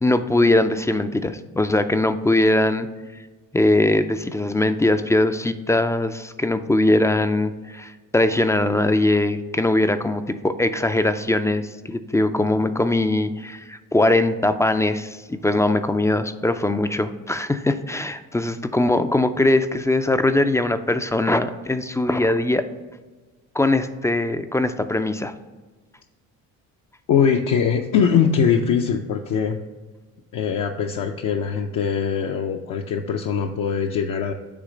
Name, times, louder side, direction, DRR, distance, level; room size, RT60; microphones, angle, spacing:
voice 1, 0.0-2.9 3.5-22.6 23.5-25.3, left 2 dB, 10° left, 10 dB, 0.3 m, -21 dB
voice 2, 27.1-29.6 30.3-34.3, left 7 dB, 60° left, 2 dB, 0.6 m, -21 dB
8.4 x 3.2 x 5.0 m, 1.3 s
supercardioid pair, 80°, 35 cm